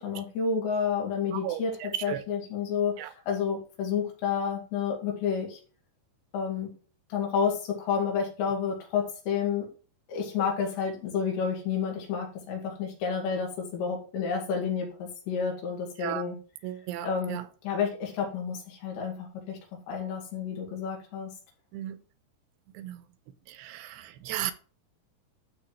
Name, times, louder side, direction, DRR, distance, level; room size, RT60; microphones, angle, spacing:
voice 1, 0.0-5.6 6.3-6.7 7.1-9.7 10.1-16.4 17.0-17.4 17.6-19.6 19.9-21.3, left 6 dB, 85° left, 4.3 m, -30 dB
voice 2, 1.3-2.2 3.0-3.1 16.0-16.2 16.6-17.5 21.7-22.0 22.7-23.0 23.5-24.5, right 13 dB, 85° right, 2.7 m, -35 dB
12.5 x 4.7 x 3.1 m
omnidirectional pair, 4.9 m